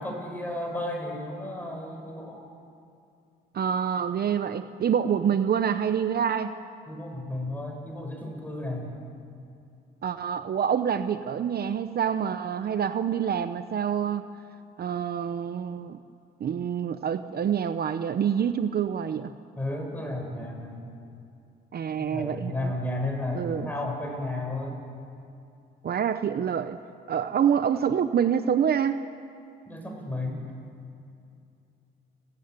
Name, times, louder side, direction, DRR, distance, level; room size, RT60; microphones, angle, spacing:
voice 1, 0.0-2.4 6.9-8.9 19.6-20.8 22.0-24.8 29.7-30.4, left 1 dB, 10° left, 1 dB, 7.2 m, -33 dB
voice 2, 3.5-6.5 10.0-14.2 14.8-16.0 16.4-19.3 21.7-22.7 23.3-23.7 25.8-26.8 27.1-29.0, right 8 dB, 50° right, 10 dB, 0.9 m, -26 dB
29.0 x 14.0 x 9.7 m, 2.5 s
cardioid pair, 90°, 20 cm